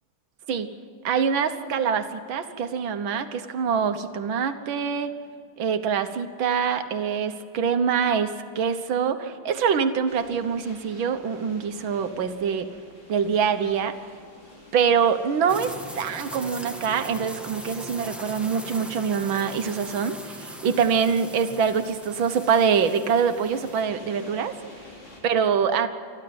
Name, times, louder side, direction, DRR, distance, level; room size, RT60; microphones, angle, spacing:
voice 1, 1.0-5.1 5.6-12.7 13.1-14.0 14.7-24.5 25.2-25.9, right 6 dB, 85° right, 9 dB, 1.9 m, -24 dB
sound 1, 10.1-25.2, left 1 dB, 85° left, 5.8 m, -50 dB
sound 2, 15.5-23.8, equal, ahead, 1.3 m, -40 dB
28.5 x 11.0 x 9.4 m, 2.2 s
omnidirectional pair, 2.1 m